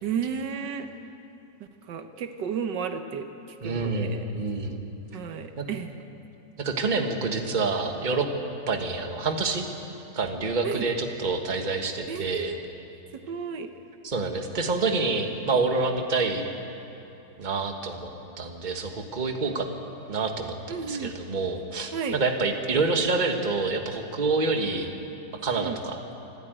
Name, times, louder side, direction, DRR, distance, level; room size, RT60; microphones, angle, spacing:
voice 1, 0.0-0.9 1.9-4.2 5.1-5.9 10.6-10.9 12.1-12.6 13.1-13.7 20.7-21.1 21.9-22.2 25.6-25.8, right 6 dB, 80° right, 8 dB, 1.6 m, -33 dB
voice 2, 3.6-4.8 5.6-5.7 6.6-8.3 8.7-9.7 10.1-12.5 14.0-16.5 17.4-18.1 18.4-19.7 20.1-24.9 25.4-26.0, right 3 dB, 25° right, 4 dB, 1.5 m, -27 dB
25.5 x 13.0 x 9.1 m, 2.9 s
omnidirectional pair, 1.9 m